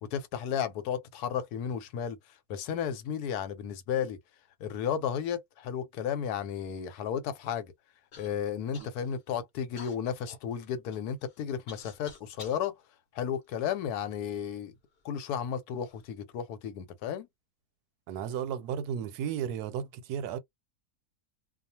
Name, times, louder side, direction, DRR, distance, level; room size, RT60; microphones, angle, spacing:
voice 1, 0.0-2.2 2.5-4.2 4.6-7.7 8.2-12.7 13.1-14.7 15.0-17.3, left 8 dB, 85° left, 1.2 m, -33 dB
Human voice / Cough, 8.1-8.3 8.7-9.2 9.8-12.6 13.3-14.2 14.9-15.0 15.7-16.1, left 4 dB, 50° left, 0.8 m, -51 dB
voice 2, 18.1-20.4, right 8 dB, 90° right, 1.1 m, -34 dB
2.4 x 2.3 x 2.7 m
omnidirectional pair, 1.6 m